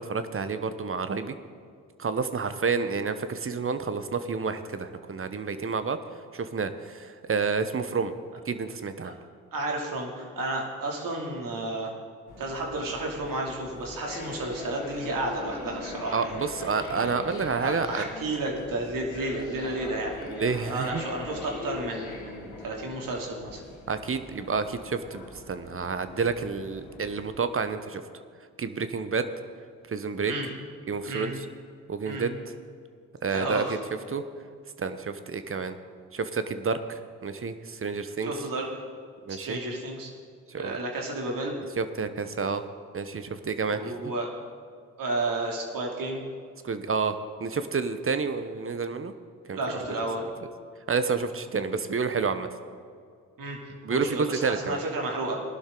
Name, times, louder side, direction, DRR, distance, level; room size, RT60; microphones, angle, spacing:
voice 1, 0.0-1.3 2.0-6.0 6.3-8.1 8.4-9.2 16.1-18.1 20.3-21.0 23.9-28.0 28.6-29.3 29.9-30.3 30.9-31.3 31.9-32.4 33.2-33.6 34.1-34.2 34.8-35.8 36.1-38.3 39.2-39.6 40.5-40.8 41.8-42.6 42.9-44.1 46.6-49.1 49.5-49.8 50.9-52.5 53.8-54.8, right 5 dB, 35° right, 11 dB, 1.0 m, -29 dB
voice 2, 9.5-11.9 12.4-16.2 16.9-17.1 17.6-20.2 20.7-23.6 30.2-30.5 31.1-31.3 32.0-32.3 33.3-33.8 38.2-38.7 39.3-40.1 40.5-41.5 43.7-44.3 45.0-46.2 49.5-50.3 53.4-53.6 53.9-55.4, right 2 dB, 60° right, 0 dB, 2.9 m, -32 dB
sound 1, 12.3-27.3, left 4 dB, 75° left, 2.1 m, -42 dB
18.0 x 11.5 x 3.9 m, 2.2 s
hypercardioid pair, 45°, 38 cm